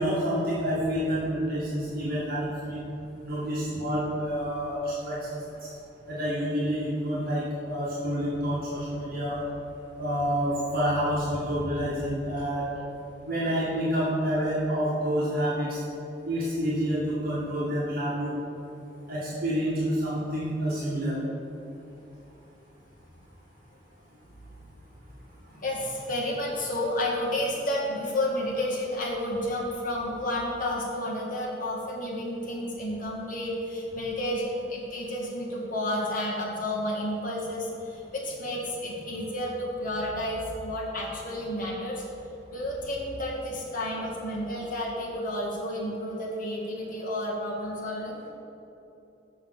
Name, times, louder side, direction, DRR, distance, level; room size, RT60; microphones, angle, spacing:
voice 1, 0.0-2.8 3.2-5.7 6.1-9.4 10.0-12.7 13.2-15.8 16.3-18.3 19.1-21.2, equal, 55° right, -9 dB, 2.0 m, -28 dB
voice 2, 25.5-42.0 42.5-48.2, left 1 dB, 50° left, -4 dB, 2.0 m, -31 dB
7.3 x 6.2 x 6.5 m, 3.0 s
head